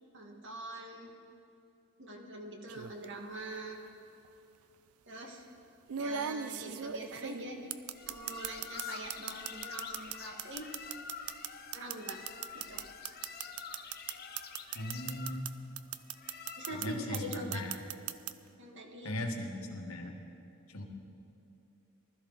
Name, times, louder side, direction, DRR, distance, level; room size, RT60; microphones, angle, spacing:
voice 1, 0.1-1.1 2.0-3.8 5.1-5.4 6.0-7.7 8.0-10.7 11.7-12.2 12.5-12.9 16.5-17.6 18.6-19.1, right 1 dB, 55° right, 1 dB, 1.7 m, -43 dB
sound 1, 2.7-3.0 4.2-4.3 5.9-8.8 9.1-15.5 15.8-16.9 17.1-18.3, right 8 dB, 90° right, 0.5 m, -38 dB
sound 2, 7.9-17.2, left 6 dB, 45° left, 0.8 m, -47 dB
voice 2, 14.7-15.5 16.8-17.8 19.0-20.2 20.7-20.8, left 1 dB, 70° left, 3 dB, 1.5 m, -38 dB
20.0 x 13.0 x 3.9 m, 2.7 s
head